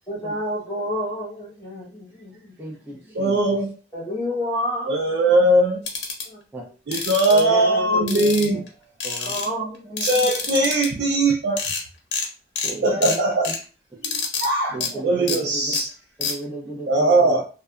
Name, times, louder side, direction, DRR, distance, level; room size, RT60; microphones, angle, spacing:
voice 1, 0.1-2.6 3.9-4.9 5.3-5.4 6.2-6.4 7.3-8.3 9.2-10.3 12.8-13.3 14.9-15.0, left 1 dB, 20° left, -3 dB, 0.9 m, -29 dB
voice 2, 2.6-3.6 6.5-6.6 8.1-8.6 9.0-9.4 12.6-13.2 14.7-15.8 16.2-17.3, right 2 dB, 10° right, -3 dB, 0.5 m, -35 dB
voice 3, 3.1-3.7 4.9-5.8 6.9-8.6 10.0-11.6 12.8-13.5 14.0-14.8 15.0-15.9 16.9-17.4, right 1 dB, 70° right, 0 dB, 0.4 m, -20 dB
sound 1, 5.9-6.2 6.9-7.4 8.1-8.7 9.0-9.5 10.0-10.9 11.3-11.4 11.6-11.8 12.1-12.3 12.6-12.7 13.0-13.6 14.0-14.5 14.8-14.9 15.3-15.4 15.7-15.8 16.2-16.3, left 5 dB, 90° left, 0.7 m, -27 dB
2.7 x 2.1 x 2.3 m, 0.36 s
head